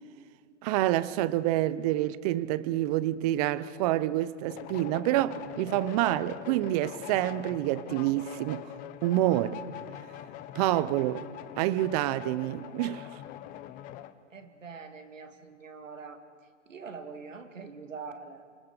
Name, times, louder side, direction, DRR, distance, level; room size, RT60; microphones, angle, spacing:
voice 1, 0.6-8.6 9.0-9.6 10.5-11.3 11.6-13.1, right 15 dB, 30° right, 0.8 m, -27 dB
sound 1, 4.5-14.1, left 12 dB, 20° left, 0.7 m, -43 dB
voice 2, 14.3-16.2 16.7-18.5, right 5 dB, 85° right, 2.4 m, -44 dB
27.5 x 21.5 x 6.7 m
hypercardioid pair, 125°, 37 cm